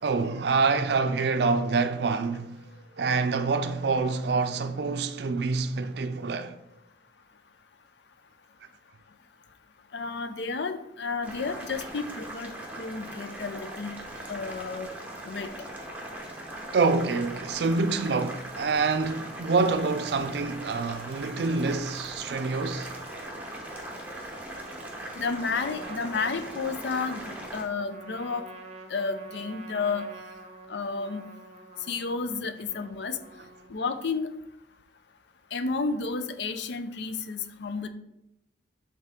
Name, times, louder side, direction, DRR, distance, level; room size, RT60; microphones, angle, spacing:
voice 1, 0.0-2.6 3.0-6.6 16.7-22.9, right 4 dB, 65° right, 0.4 m, -26 dB
voice 2, 9.9-14.0 14.3-14.9 15.2-15.5 25.2-28.4 28.9-30.1 30.7-31.3 31.9-33.2 33.7-34.3 35.5-37.9, left 4 dB, 75° left, 0.5 m, -31 dB
Boiling, 11.2-27.6, right 1 dB, 10° right, 0.9 m, -40 dB
Trumpet, 25.2-33.9, right 2 dB, 35° right, 0.8 m, -47 dB
8.0 x 3.6 x 3.6 m
head